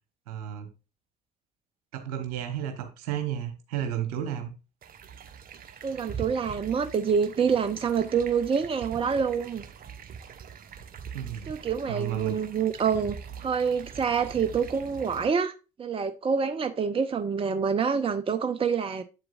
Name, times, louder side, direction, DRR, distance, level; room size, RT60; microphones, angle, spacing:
voice 1, 0.3-0.7 1.9-4.5 11.1-11.5 11.9-12.4, right 10 dB, 70° right, 1.2 m, -32 dB
sound 1, 4.8-15.3, right 7 dB, 45° right, 1.1 m, -43 dB
voice 2, 5.8-9.6 11.4-15.5 15.8-19.0, right 6 dB, 25° right, 0.8 m, -27 dB
8.2 x 7.8 x 2.5 m
figure-of-eight pair, 50°, 21 cm